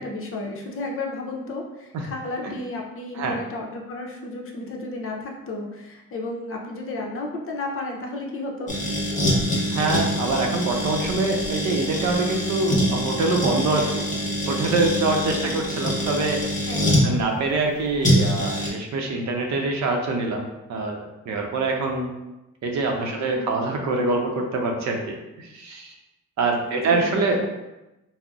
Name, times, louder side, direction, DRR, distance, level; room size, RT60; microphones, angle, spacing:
voice 1, 0.0-8.7 15.3-15.7 16.5-17.2 23.1-23.6 26.7-27.2, left 2 dB, 45° left, 0 dB, 0.6 m, -33 dB
sound 1, 8.7-17.1 18.0-18.7, equal, 25° left, 0.9 m, -24 dB
voice 2, 9.7-14.0 14.5-16.4 17.0-20.4 20.7-22.1 22.6-25.9 26.4-27.5, right 3 dB, 65° right, 2 dB, 0.6 m, -25 dB
3.7 x 2.0 x 2.3 m, 0.98 s
cardioid pair, 90°, 30 cm